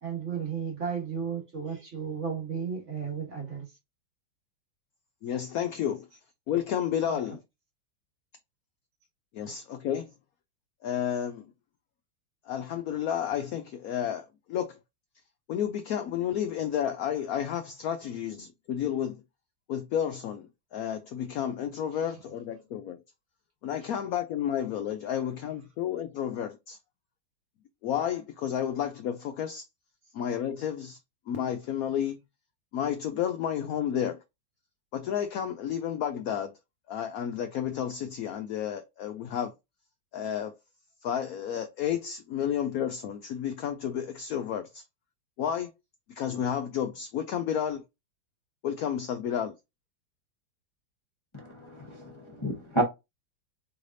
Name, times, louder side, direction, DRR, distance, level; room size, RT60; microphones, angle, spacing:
voice 1, 0.0-3.7 7.1-7.2 23.8-23.9, right 7 dB, 45° right, 1.4 m, -34 dB
voice 2, 5.2-6.0 6.5-7.4 9.3-10.1 10.8-11.5 12.5-14.8 15.5-19.2 19.7-20.5 20.7-23.0 23.6-26.8 27.8-29.6 30.1-31.0 31.3-32.2 32.7-34.2 34.9-36.5 36.9-39.5 40.1-40.5 41.0-44.8 45.4-45.7 46.2-47.8 48.6-49.5, left 9 dB, 80° left, 0.8 m, -31 dB
voice 3, 51.3-52.8, right 1 dB, 20° left, 0.9 m, -31 dB
4.7 x 3.3 x 2.5 m
omnidirectional pair, 2.1 m